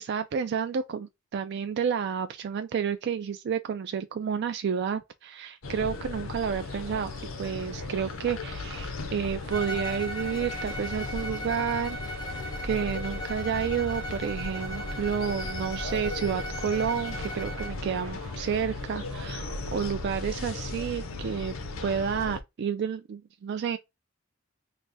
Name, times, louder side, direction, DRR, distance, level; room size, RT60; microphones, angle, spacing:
voice 1, 0.0-7.1 7.4-12.2 12.6-21.5 21.8-23.8, right 7 dB, 55° right, 0.3 m, -30 dB
sound 1, 5.6-22.4, left 3 dB, 80° left, 0.7 m, -36 dB
sound 2, 6.6-19.9, right 4 dB, 75° right, 1.1 m, -49 dB
Bowed string instrument, 9.5-17.8, equal, 20° left, 0.7 m, -38 dB
3.3 x 2.1 x 3.9 m
head